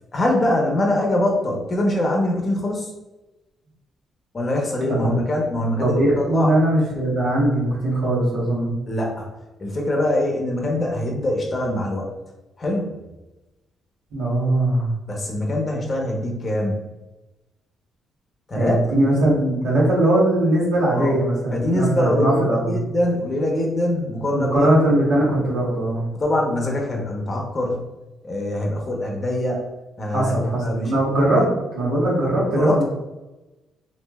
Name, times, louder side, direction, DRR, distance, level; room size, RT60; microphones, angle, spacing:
voice 1, 0.1-2.9 4.3-6.6 8.9-9.3 9.6-12.1 12.6-13.0 15.1-16.8 18.5-18.8 20.9-21.2 21.5-24.7 26.2-27.9 28.2-29.7 30.0-31.0 31.3-31.6 32.5-32.8, left 1 dB, 30° left, -1 dB, 0.7 m, -23 dB
voice 2, 5.8-8.7 14.1-14.9 18.5-22.8 24.3-26.0 30.1-31.4 31.7-32.8, right 1 dB, 80° right, -5 dB, 1.3 m, -20 dB
3.1 x 2.7 x 2.3 m, 1.0 s
cardioid pair, 90°, 0 cm